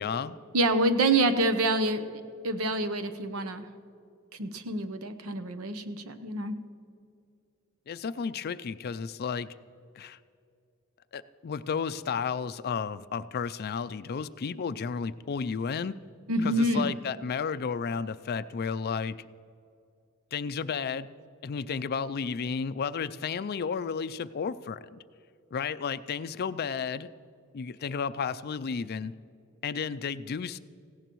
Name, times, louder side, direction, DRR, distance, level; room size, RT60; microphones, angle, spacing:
voice 1, 0.0-0.4 7.9-9.5 10.0-10.2 11.1-16.0 16.4-19.2 20.3-21.1 21.4-25.0 25.5-27.1 27.5-29.1 29.6-30.6, left 6 dB, 45° left, 15 dB, 0.4 m, -32 dB
voice 2, 0.5-2.0 2.4-3.7 4.4-6.5 16.3-16.9, right 2 dB, 80° right, 10 dB, 0.9 m, -27 dB
18.0 x 16.5 x 3.1 m, 2.5 s
head